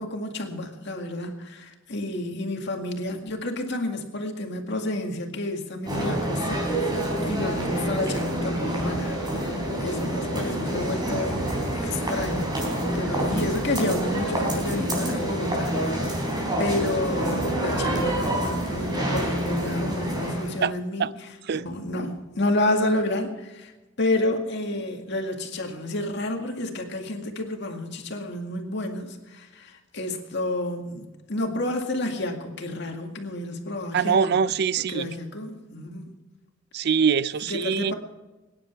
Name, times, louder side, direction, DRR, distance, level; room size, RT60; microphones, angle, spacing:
voice 1, 0.0-6.9 7.2-11.5 11.7-12.6 12.9-16.2 16.6-23.7 24.0-34.4 34.9-36.1 37.5-37.9, left 1 dB, 60° left, 3 dB, 2.1 m, -30 dB
sound 1, 5.9-20.7, right 1 dB, 20° right, 3.8 m, -27 dB
voice 2, 33.9-35.1 36.7-37.9, right 6 dB, 55° right, 18 dB, 0.4 m, -23 dB
23.5 x 10.5 x 4.6 m, 1.1 s
head